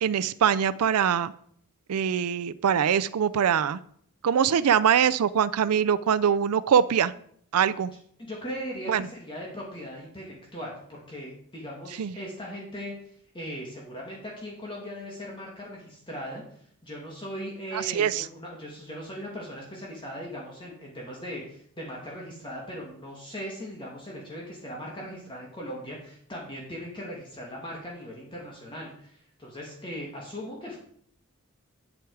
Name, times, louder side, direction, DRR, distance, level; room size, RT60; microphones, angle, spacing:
voice 1, 0.0-1.3 1.9-3.8 4.2-7.1 7.5-7.9 8.9-9.1 12.0-12.1 17.7-18.3, right 8 dB, 85° right, 14 dB, 0.4 m, -23 dB
voice 2, 8.2-16.4 16.8-30.8, equal, 25° left, -3 dB, 2.0 m, -39 dB
9.5 x 7.9 x 4.7 m, 0.63 s
head